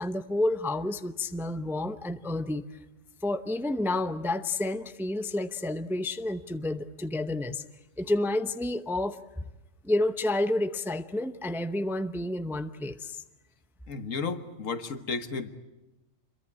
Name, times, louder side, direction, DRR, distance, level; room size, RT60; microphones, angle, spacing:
voice 1, 0.0-2.6 3.2-7.6 8.0-9.5 9.8-13.2, left 2 dB, ahead, 10 dB, 0.6 m, -30 dB
voice 2, 13.9-15.5, left 4 dB, 80° left, 10 dB, 1.7 m, -33 dB
26.5 x 22.5 x 8.6 m, 1.0 s
omnidirectional pair, 1.3 m